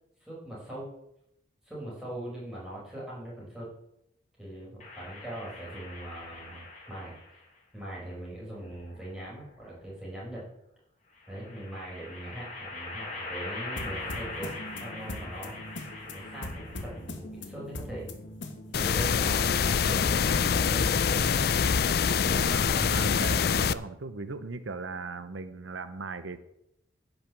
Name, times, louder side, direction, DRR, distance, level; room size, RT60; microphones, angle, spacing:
voice 1, 0.2-0.9 1.6-3.7 4.4-7.1 7.7-10.4 11.3-15.6 16.1-18.1 18.7-21.5 22.2-22.4 22.7-23.1, right 1 dB, 5° right, -7 dB, 5.4 m, -41 dB
sound 1, 4.8-7.4 8.6-9.6 11.2-17.2, left 3 dB, 35° left, 3.5 m, -42 dB
sound 2, 13.8-19.1, left 1 dB, 80° left, 1.7 m, -41 dB
sound 3, 18.7-23.7, left 6 dB, 55° left, 0.4 m, -25 dB
voice 2, 21.8-26.4, right 3 dB, 85° right, 12 dB, 0.8 m, -39 dB
10.5 x 6.5 x 7.7 m, 0.79 s
head